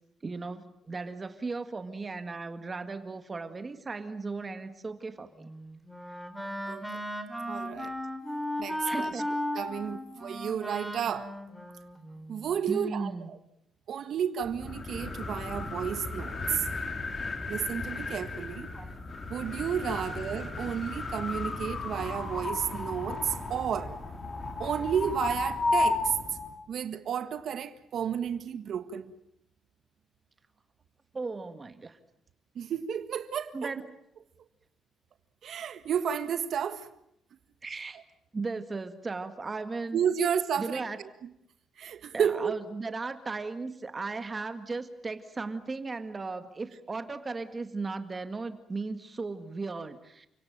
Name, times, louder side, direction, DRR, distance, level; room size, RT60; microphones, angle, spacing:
voice 1, 0.2-5.5 8.8-9.3 12.7-13.3 18.7-18.9 31.1-32.0 33.5-34.0 37.6-38.0 38.3-40.0 40.6-41.0 42.1-50.3, right 3 dB, 25° right, 1.9 m, -36 dB
Wind instrument woodwind instrument, 5.4-12.5, equal, ahead, 3.4 m, -36 dB
voice 2, 7.5-7.9 8.6-9.2 9.5-11.3 12.3-13.4 13.9-16.7 17.5-18.7 19.3-23.9 24.6-26.2 26.7-29.1 32.5-33.7 35.4-36.9 39.9-40.8 41.8-42.6, right 8 dB, 65° right, 1.7 m, -32 dB
sound 1, 14.4-26.6, left 3 dB, 35° left, 3.3 m, -34 dB
29.0 x 17.5 x 9.0 m
cardioid pair, 110°, 0 cm